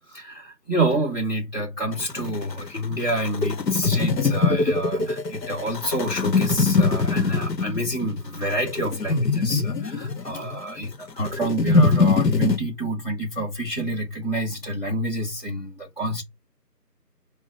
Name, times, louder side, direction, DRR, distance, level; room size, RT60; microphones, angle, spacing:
voice 1, 0.1-16.2, right 1 dB, 35° left, 1.3 m, -28 dB
sound 1, 1.9-12.6, left 3 dB, 80° left, 0.9 m, -23 dB
5.5 x 2.1 x 3.9 m
figure-of-eight pair, 180°, 49 cm